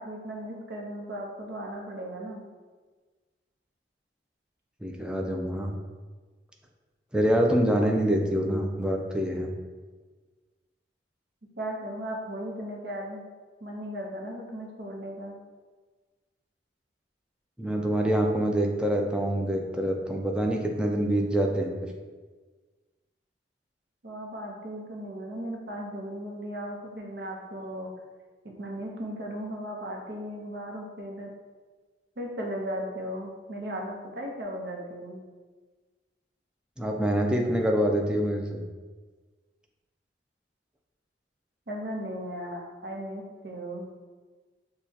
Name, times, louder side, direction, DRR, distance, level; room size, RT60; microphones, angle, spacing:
voice 1, 0.0-2.4 11.6-13.2 13.6-15.4 24.0-27.9 28.4-31.3 32.2-35.2 41.7-43.9, equal, 60° right, 0 dB, 0.7 m, -36 dB
voice 2, 4.8-5.8 7.1-9.5 17.6-21.7 36.8-38.6, right 1 dB, 5° right, 1 dB, 0.3 m, -25 dB
6.3 x 2.3 x 2.8 m, 1.4 s
head